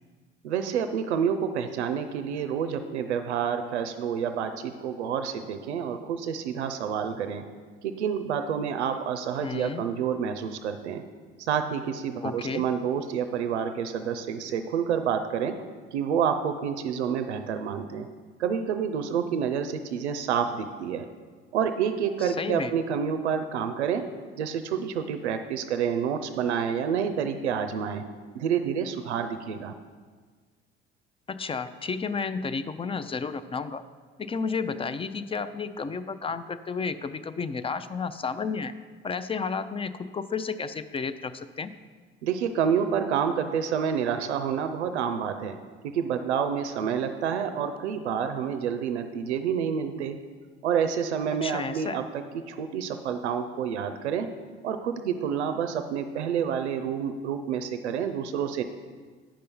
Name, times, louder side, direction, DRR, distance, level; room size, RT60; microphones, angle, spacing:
voice 1, 0.4-7.4 7.8-11.0 11.4-15.5 15.9-18.1 18.4-21.1 21.5-24.0 24.4-28.0 28.3-29.7 42.2-45.6 45.8-50.2 50.6-54.3 54.6-58.6, right 7 dB, 85° right, 8 dB, 0.5 m, -28 dB
voice 2, 9.4-9.9 12.2-12.6 22.2-22.7 31.3-33.8 34.2-38.7 39.0-41.7 51.4-52.0, left 5 dB, 15° left, 13 dB, 0.4 m, -32 dB
8.8 x 5.5 x 5.3 m, 1.5 s
hypercardioid pair, 65°, 33 cm